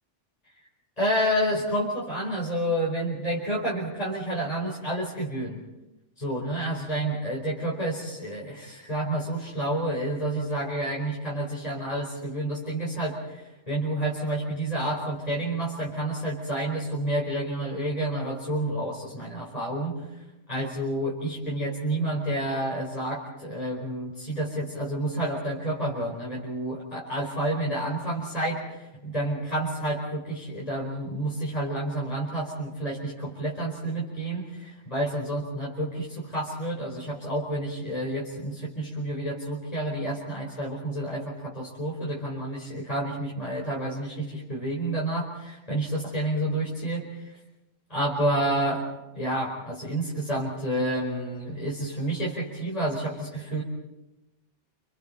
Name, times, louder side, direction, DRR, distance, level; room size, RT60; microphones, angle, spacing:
voice 1, 1.0-5.6 6.2-20.1 20.5-47.3 47.9-48.8 49.1-53.6, right 1 dB, 30° left, -5 dB, 4.9 m, -29 dB
29.0 x 28.5 x 4.3 m, 0.96 s
omnidirectional pair, 1.2 m